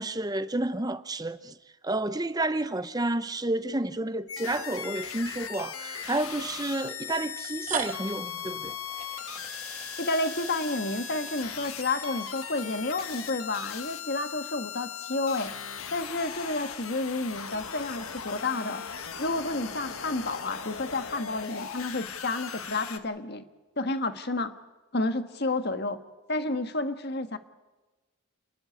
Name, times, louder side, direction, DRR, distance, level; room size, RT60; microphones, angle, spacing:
voice 1, 0.0-1.6 1.8-8.8, right 2 dB, 20° right, 0.7 m, -30 dB
sound 1, 3.8-4.0 5.0-5.1 6.3-6.4 7.3-13.3, right 7 dB, 35° right, 1.3 m, -41 dB
sound 2, 4.3-23.0, left 7 dB, 85° left, 1.6 m, -38 dB
voice 2, 10.0-15.5 15.9-18.8 19.2-23.4 23.8-24.5 24.9-26.0 26.3-27.4, left 2 dB, 50° left, 1.5 m, -30 dB
30.0 x 11.5 x 9.7 m
head